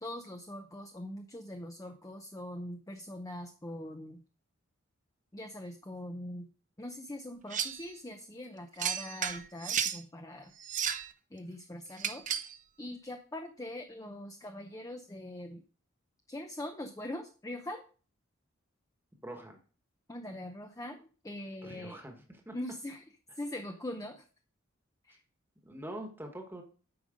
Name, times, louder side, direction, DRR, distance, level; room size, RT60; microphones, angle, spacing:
voice 1, 0.0-4.2 5.3-6.5 6.8-10.5 11.3-12.5 12.8-15.6 16.3-17.8 20.1-22.0 22.5-23.0 23.4-24.2 25.1-25.2, left 1 dB, 15° left, 5 dB, 0.6 m, -42 dB
sound 1, 7.5-7.8 8.8-10.0 10.6-11.1 12.0-12.5, right 8 dB, 40° right, 0.7 m, -33 dB
voice 2, 19.2-19.6 21.6-22.6 25.6-26.6, right 1 dB, 10° right, 3 dB, 1.3 m, -44 dB
8.7 x 5.3 x 5.1 m, 0.39 s
head